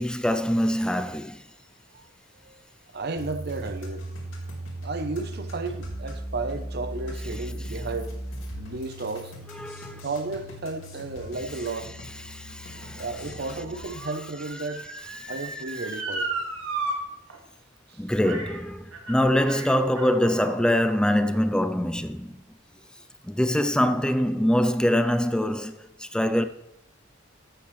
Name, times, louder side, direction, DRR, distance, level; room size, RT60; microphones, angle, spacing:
voice 1, 0.0-1.4 9.5-10.0 12.3-13.0 15.2-15.3 17.9-22.4 23.2-26.4, equal, 5° left, 0.5 m, -24 dB
voice 2, 2.9-4.1 4.8-8.2 8.6-9.3 10.0-12.0 13.0-14.9 15.3-16.3 17.9-18.0, right 3 dB, 55° right, 0.9 m, -33 dB
sound 1, 3.2-13.8, right 1 dB, 70° left, 3.3 m, -38 dB
Motor vehicle (road) / Siren, 12.0-16.9 17.3-17.4 18.2-18.6 18.9-20.6 21.3-21.4, right 3 dB, 85° right, 2.1 m, -35 dB
13.0 x 8.4 x 3.3 m
head